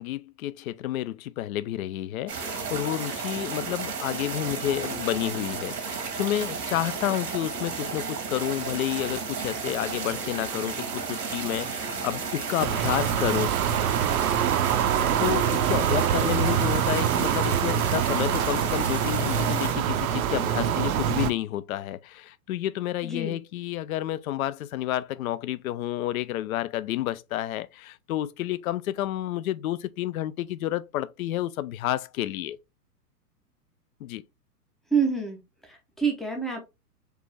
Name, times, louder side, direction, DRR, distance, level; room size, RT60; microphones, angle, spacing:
voice 1, 0.0-13.5 15.2-32.6 34.0-34.2, left 13 dB, 60° left, 0.5 m, -30 dB
sound 1, 2.3-19.7, right 5 dB, 80° right, 1.4 m, -33 dB
sound 2, 12.6-21.3, right 9 dB, 65° right, 0.6 m, -25 dB
voice 2, 23.0-23.4 34.9-36.6, right 5 dB, ahead, 0.5 m, -27 dB
4.6 x 2.5 x 3.2 m
hypercardioid pair, 115°, 47 cm